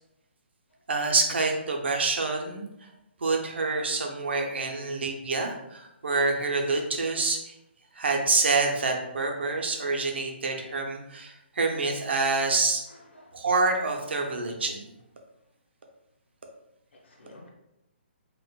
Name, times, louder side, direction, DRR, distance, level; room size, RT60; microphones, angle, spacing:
voice 1, 0.9-2.7 3.2-7.5 7.9-12.8 13.3-14.9, right 3 dB, 70° right, 2 dB, 0.7 m, -27 dB
voice 2, 12.9-13.4 16.9-17.5, left 1 dB, 80° left, -1 dB, 1.1 m, -52 dB
4.4 x 2.4 x 2.3 m, 0.86 s
hypercardioid pair, 170°, 6 cm